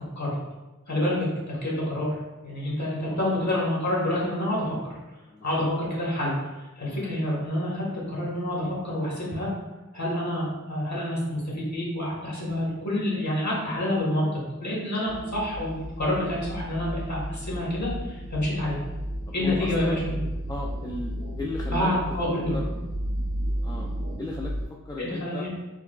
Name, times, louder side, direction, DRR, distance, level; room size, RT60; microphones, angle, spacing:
voice 1, 0.9-2.1 2.4-4.7 5.4-6.4 6.8-9.5 9.9-18.8 19.3-20.1 21.7-22.6 25.0-25.5, left 1 dB, 60° left, -6 dB, 1.3 m, -28 dB
voice 2, 3.1-3.5 5.3-5.7 6.8-7.0 13.5-13.7 15.0-15.2 19.3-20.0 20.5-21.9 22.5-22.7 23.6-23.9 24.2-25.5, left 2 dB, 15° left, -2 dB, 0.3 m, -36 dB
sound 1, 15.1-24.7, equal, 90° left, 0.6 m, -33 dB
sound 2, 19.3-24.3, right 1 dB, 60° right, 0.7 m, -43 dB
4.6 x 2.2 x 2.3 m, 1.1 s
wide cardioid pair, 55°, 32 cm